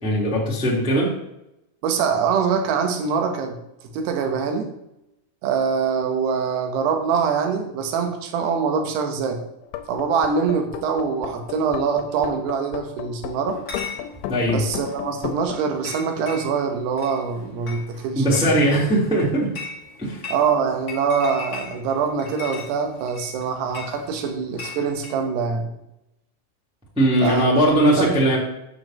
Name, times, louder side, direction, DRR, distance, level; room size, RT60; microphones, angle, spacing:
voice 1, 0.0-1.1 14.3-14.6 18.1-19.5 20.0-20.2 26.9-28.4, right 1 dB, ahead, -4 dB, 1.2 m, -19 dB
voice 2, 1.8-3.6 3.9-4.7 5.4-9.4 9.9-13.6 14.5-18.5 20.3-25.7 27.2-28.2, right 6 dB, 70° right, 5 dB, 3.1 m, -24 dB
sound 1, 9.6-15.6, left 9 dB, 80° left, 2.9 m, -33 dB
Chatter / Chink clink, 13.5-25.2, left 4 dB, 45° left, 1.1 m, -39 dB
9.1 x 4.9 x 7.6 m, 0.85 s
omnidirectional pair, 5.3 m